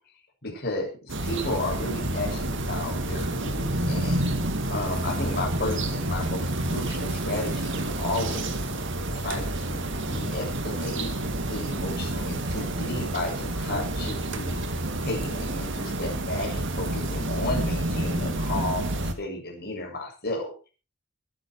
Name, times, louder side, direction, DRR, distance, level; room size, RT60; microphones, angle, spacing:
voice 1, 0.4-4.2 4.7-8.6 9.1-11.1 11.4-14.6 15.0-20.7, left 2 dB, 50° left, 0 dB, 7.9 m, -33 dB
sound 1, 1.1-19.1, right 1 dB, 60° right, 2.2 m, -29 dB
22.5 x 10.0 x 4.8 m, 0.35 s
head